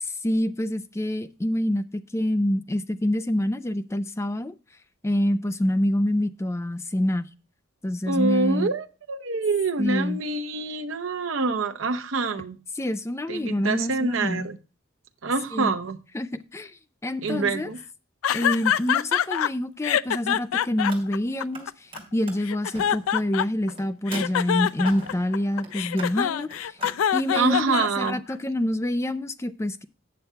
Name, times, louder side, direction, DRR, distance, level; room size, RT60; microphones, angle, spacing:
voice 1, 0.2-4.5 5.0-7.3 7.8-8.7 9.8-10.2 12.8-14.5 15.5-15.7 16.1-16.7 17.0-17.7 18.3-21.7 22.1-26.8 27.1-29.8, left 1 dB, 15° left, 0.4 m, -26 dB
voice 2, 8.1-12.6 13.3-14.6 15.2-16.0 17.2-17.8 27.4-28.2, right 3 dB, 75° right, 0.8 m, -26 dB
sound 1, 18.2-19.5 19.8-22.0 22.4-23.7 24.1-28.3, left 9 dB, 90° left, 0.4 m, -25 dB
Car, 20.7-21.6 21.9-27.0, right 2 dB, 25° right, 2.7 m, -42 dB
8.7 x 6.8 x 4.5 m
head